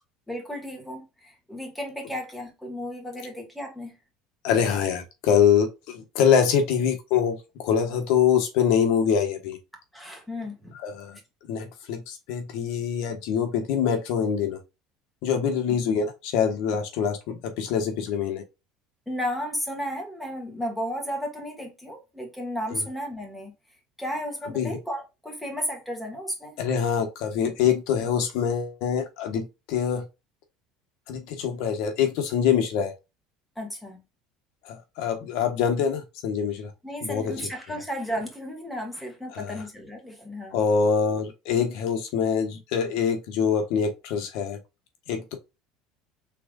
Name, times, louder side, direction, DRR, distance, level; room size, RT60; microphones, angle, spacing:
voice 1, 0.3-3.9 9.9-10.7 19.1-23.5 24.0-26.5 33.6-34.0 36.8-40.6, equal, 5° left, 1.9 m, -33 dB
voice 2, 4.4-9.6 10.8-11.2 11.5-14.6 15.2-18.4 22.7-22.8 24.5-24.8 26.6-30.0 31.1-32.9 34.6-36.7 37.0-37.3 39.3-39.6 40.5-44.6 45.1-45.3, left 7 dB, 70° left, 1.2 m, -24 dB
5.9 x 3.6 x 2.4 m
cardioid pair, 130°, 0 cm